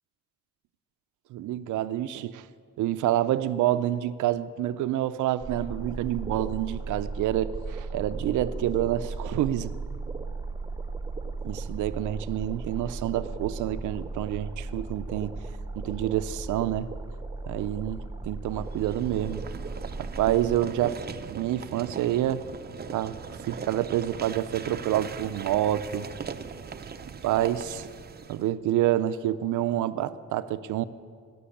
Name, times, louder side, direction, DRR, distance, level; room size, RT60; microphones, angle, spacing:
voice 1, 1.3-2.4 2.8-9.7 11.4-15.4 15.8-16.9 17.5-19.4 20.0-21.0 21.3-22.4 22.9-23.2 23.4-26.1 27.2-27.9 28.3-30.8, right 12 dB, 80° right, 13 dB, 0.6 m, -28 dB
sound 1, 5.4-20.6, right 3 dB, 15° right, 1.1 m, -36 dB
sound 2, 18.5-28.5, right 6 dB, 35° right, 0.7 m, -40 dB
18.5 x 6.3 x 8.6 m, 2.1 s
cardioid pair, 90°, 30 cm